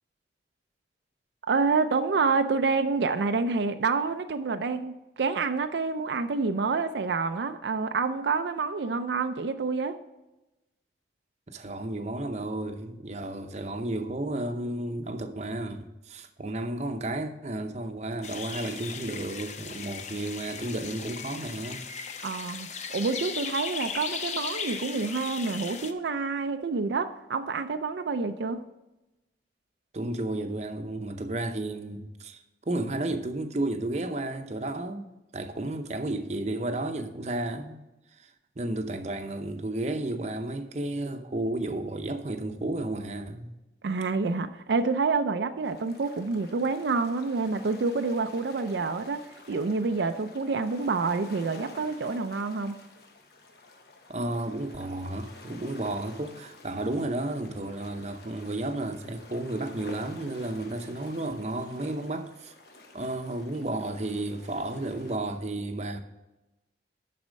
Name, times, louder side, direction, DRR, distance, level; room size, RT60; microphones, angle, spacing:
voice 1, 1.5-10.0 22.2-28.6 43.8-52.8, right 4 dB, 75° right, 0.5 m, -28 dB
voice 2, 11.5-21.8 29.9-32.4 32.7-37.8 38.2-43.6 54.1-62.5 62.9-66.0, right 2 dB, 40° right, 0.7 m, -32 dB
sound 1, 18.2-25.9, left 6 dB, 40° left, 0.6 m, -37 dB
sound 2, 45.6-65.2, left 2 dB, 60° left, 1.1 m, -50 dB
11.5 x 4.2 x 6.2 m
head